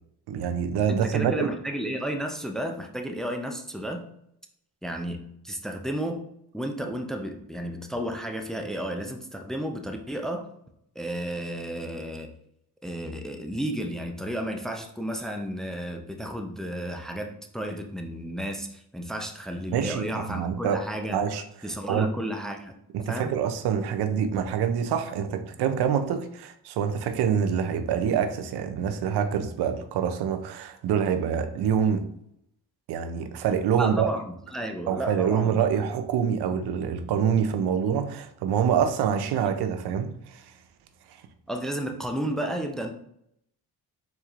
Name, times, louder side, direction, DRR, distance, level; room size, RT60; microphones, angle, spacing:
voice 1, 0.3-1.5 19.7-20.8 21.1-21.4 21.9-22.1 22.9-32.1 32.9-34.1 34.9-40.4, right 8 dB, 80° right, 0.5 m, -26 dB
voice 2, 0.9-4.0 4.8-5.2 5.4-6.2 6.5-10.5 11.0-12.3 12.8-21.2 21.6-22.7 23.1-23.3 33.8-35.7 41.5-42.9, right 1 dB, ahead, 0.5 m, -32 dB
4.4 x 3.3 x 2.4 m
cardioid pair, 70°, 38 cm